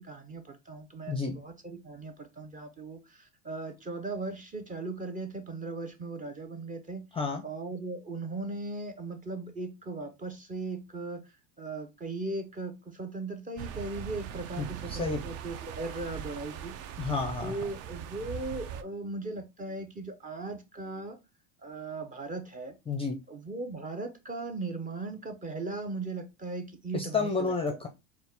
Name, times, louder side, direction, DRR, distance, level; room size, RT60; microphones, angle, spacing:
voice 1, 0.0-7.1 7.4-11.2 11.6-16.8 17.4-21.2 21.6-22.8 23.3-27.8, right 3 dB, 20° right, 0.8 m, -38 dB
voice 2, 1.1-1.4 7.1-7.4 14.6-15.2 17.0-17.5 22.9-23.2 26.9-27.9, left 4 dB, 15° left, 0.6 m, -31 dB
sound 1, 13.6-18.8, right 9 dB, 40° right, 0.5 m, -40 dB
4.1 x 2.4 x 3.5 m
supercardioid pair, 110°, 40 cm